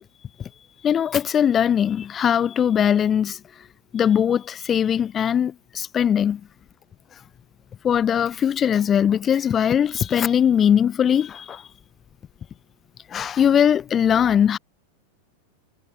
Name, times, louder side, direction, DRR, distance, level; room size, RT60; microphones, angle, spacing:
voice 1, 0.8-3.4 3.9-6.4 7.8-11.7 13.1-14.6, left 8 dB, 25° left, 0.5 m, -20 dB
figure-of-eight pair, 90°, 0 cm